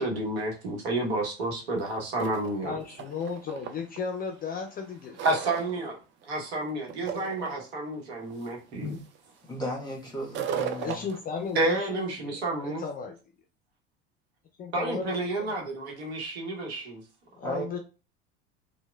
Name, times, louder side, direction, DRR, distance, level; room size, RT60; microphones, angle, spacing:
voice 1, 0.0-2.8 5.2-5.9 6.3-8.9 11.5-12.8 14.7-17.0, right 2 dB, 80° right, 0.9 m, -30 dB
sound 1, 1.8-1.9 2.1-4.0 4.5-5.8 6.2-6.6 6.9-7.6 8.3-8.5 8.9-9.2 10.2-11.8, right 8 dB, 40° right, 0.4 m, -36 dB
voice 2, 2.6-5.2 10.8-13.2 14.6-15.6 17.4-17.8, left 5 dB, 30° left, 0.4 m, -35 dB
voice 3, 9.5-11.1 17.4-17.7, equal, 15° left, 1.2 m, -35 dB
2.9 x 2.1 x 2.2 m
hypercardioid pair, 75°, 31 cm